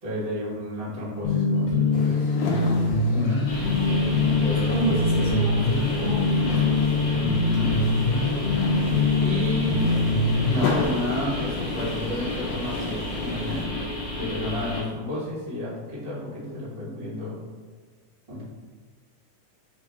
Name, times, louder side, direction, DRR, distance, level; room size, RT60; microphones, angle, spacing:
voice 1, 0.0-2.4 3.1-3.4 4.2-4.9 7.1-7.8 9.2-9.9 10.5-13.7 14.1-17.4 18.3-18.4, left 1 dB, 45° right, -8 dB, 0.7 m, -32 dB
sound 1, 1.2-10.8, left 3 dB, 70° left, 1.6 m, -23 dB
sound 2, 1.9-13.7, left 3 dB, 85° left, 1.4 m, -34 dB
sound 3, 3.5-14.8, left 1 dB, 50° left, 2.0 m, -32 dB
voice 2, 4.7-6.3, right 2 dB, 75° right, -6 dB, 1.4 m, -29 dB
4.6 x 2.8 x 3.5 m, 1.4 s
omnidirectional pair, 3.6 m